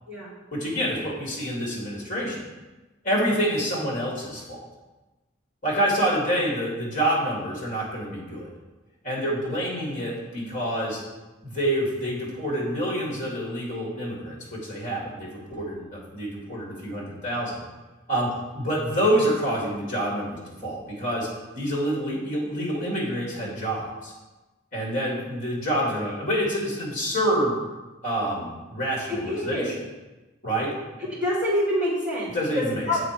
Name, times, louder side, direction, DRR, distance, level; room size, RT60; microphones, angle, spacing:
voice 1, 0.5-2.4 3.0-4.6 5.6-8.5 9.0-11.0 11.4-17.6 18.1-21.3 21.6-24.1 24.7-27.6 28.0-29.7 30.4-30.7 32.3-32.8, equal, 40° left, -4 dB, 2.4 m, -27 dB
voice 2, 29.1-29.6 31.1-33.0, left 1 dB, 5° right, -9 dB, 2.5 m, -26 dB
7.9 x 4.0 x 4.6 m, 1.1 s
head